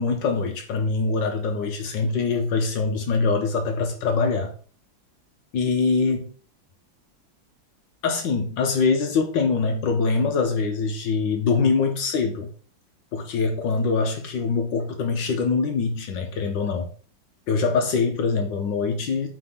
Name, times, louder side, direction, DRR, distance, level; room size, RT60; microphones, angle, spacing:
voice 1, 0.0-4.5 5.5-6.3 8.0-12.5 13.1-16.9 17.5-19.3, left 4 dB, 70° left, 1.4 m, -23 dB
5.0 x 3.9 x 5.5 m
omnidirectional pair, 2.2 m